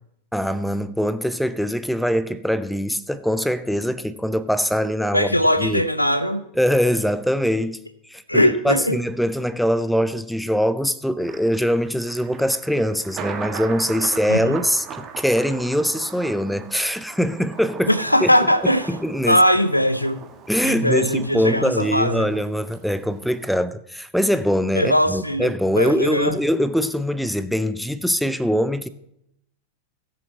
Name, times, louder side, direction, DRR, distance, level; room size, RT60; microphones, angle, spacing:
voice 1, 0.3-5.3 5.6-5.8 6.6-7.8 8.1-17.9 18.2-18.3 18.9-19.4 20.5-28.9, equal, ahead, 0.5 m, -22 dB
voice 2, 5.1-6.4 8.3-9.0 14.3-14.6 17.9-18.9 19.3-20.2 20.6-22.3 24.7-26.4, equal, 85° left, 0.7 m, -20 dB
Thunder, 11.2-23.5, right 6 dB, 30° right, 1.3 m, -39 dB
16.0 x 7.0 x 4.2 m
figure-of-eight pair, 90°, 0 cm